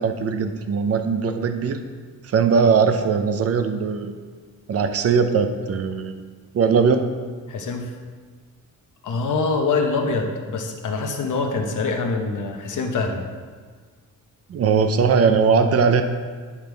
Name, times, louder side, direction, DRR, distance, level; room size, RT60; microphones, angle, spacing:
voice 1, 0.0-1.8 2.2-4.1 4.7-6.2 6.5-7.0 14.5-16.0, right 5 dB, 45° right, 7 dB, 0.5 m, -20 dB
voice 2, 7.5-7.9 9.0-13.2, left 4 dB, 65° left, 3 dB, 0.9 m, -24 dB
9.8 x 3.5 x 4.5 m, 1.5 s
wide cardioid pair, 175°, 33 cm